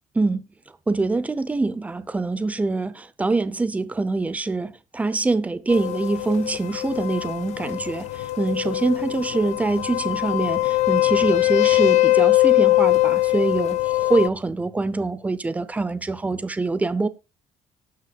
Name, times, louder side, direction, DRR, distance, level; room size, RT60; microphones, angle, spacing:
voice 1, 0.9-17.1, right 3 dB, 10° right, 0.7 m, -24 dB
sound 1, 5.7-14.3, left 17 dB, 65° left, 0.4 m, -21 dB
18.5 x 6.3 x 2.4 m
cardioid pair, 140°, 13 cm